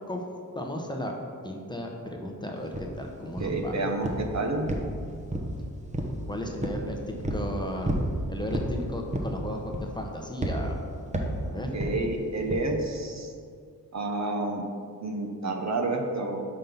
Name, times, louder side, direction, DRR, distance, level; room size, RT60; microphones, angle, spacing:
voice 1, 0.5-1.1 1.4-3.9 6.3-8.0 8.3-10.8 11.4-11.7, left 1 dB, 10° left, 1 dB, 0.9 m, -35 dB
sound 1, 2.7-2.9 3.4-3.7 4.0-4.3 4.7-5.6 5.9-6.2 6.6-6.8 7.2-7.5 7.8-8.1 8.5-8.7 9.1-9.4 9.7-10.0 10.4-10.6 11.1-11.4 11.8-12.0 12.5-12.7, right 1 dB, 20° right, 0.9 m, -30 dB
voice 2, 3.4-4.7 11.7-13.3 13.9-14.6 15.0-16.5, right 2 dB, 50° right, 3 dB, 0.9 m, -29 dB
5.4 x 5.3 x 5.8 m, 2.3 s
cardioid pair, 85°, 36 cm